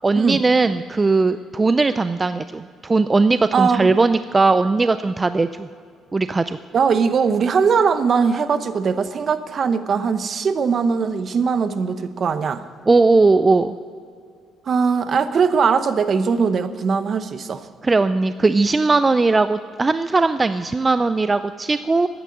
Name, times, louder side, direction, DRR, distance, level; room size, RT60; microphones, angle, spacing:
voice 1, 0.0-5.7 6.1-6.6 12.9-13.8 17.8-22.1, right 3 dB, 25° right, 12 dB, 0.4 m, -18 dB
voice 2, 3.5-4.0 6.7-12.7 14.7-17.7, right 5 dB, 50° right, 12 dB, 0.9 m, -20 dB
14.0 x 9.8 x 7.8 m, 2.3 s
cardioid pair, 95°, 0 cm